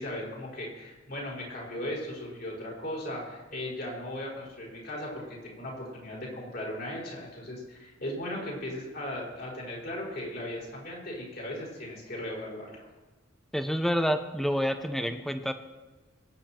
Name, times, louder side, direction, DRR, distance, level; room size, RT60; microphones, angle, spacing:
voice 1, 0.0-12.7, left 1 dB, 55° left, -4 dB, 5.3 m, -37 dB
voice 2, 13.5-15.5, equal, ahead, 8 dB, 0.8 m, -28 dB
23.0 x 9.5 x 4.5 m, 1.2 s
head